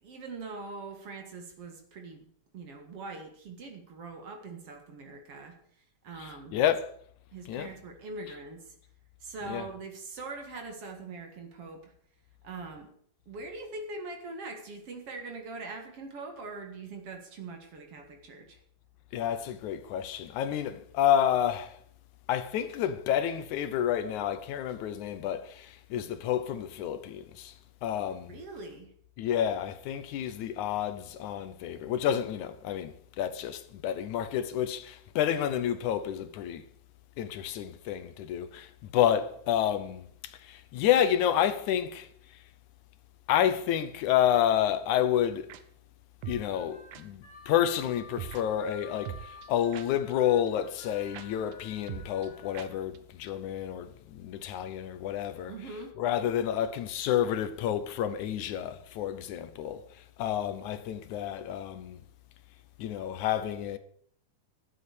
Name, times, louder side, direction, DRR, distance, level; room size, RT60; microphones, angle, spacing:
voice 1, 0.0-2.3 2.5-5.6 6.0-6.6 7.3-8.7 9.2-11.9 12.4-12.9 13.3-18.6 28.3-28.9 55.5-55.9, right 3 dB, 55° right, 2.6 m, -42 dB
voice 2, 6.2-6.9 7.5-7.7 9.4-9.7 19.1-21.8 22.3-27.5 27.8-28.4 29.2-36.6 37.2-42.1 43.3-45.5 46.3-55.5 56.0-62.0 62.8-63.8, left 10 dB, 75° left, 2.2 m, -29 dB
sound 1, 45.5-45.6 46.2-46.5 46.9-47.0 48.2-48.4 49.1-50.1 50.5-50.6 50.8-50.9 51.1-51.3 51.5-51.6 51.9-52.3 52.5-52.7 52.9-53.0 53.3-53.4, right 10 dB, 80° right, 2.3 m, -40 dB
Harmonica, 46.2-52.8, left 4 dB, 50° left, 2.8 m, -51 dB
12.0 x 7.6 x 8.0 m
omnidirectional pair, 3.5 m